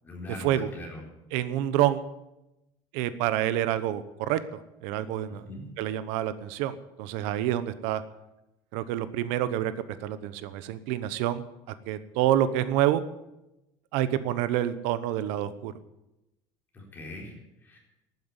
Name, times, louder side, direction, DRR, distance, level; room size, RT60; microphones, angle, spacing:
voice 1, 0.0-1.0 5.3-5.7 16.7-17.8, left 1 dB, 15° left, -2 dB, 4.3 m, -41 dB
voice 2, 1.3-2.1 2.9-5.5 5.8-8.0 8.7-9.7 10.0-11.4 11.9-13.0 13.9-15.7, right 12 dB, 85° right, 13 dB, 0.9 m, -27 dB
12.5 x 9.5 x 9.7 m, 0.93 s
cardioid pair, 170°, 10 cm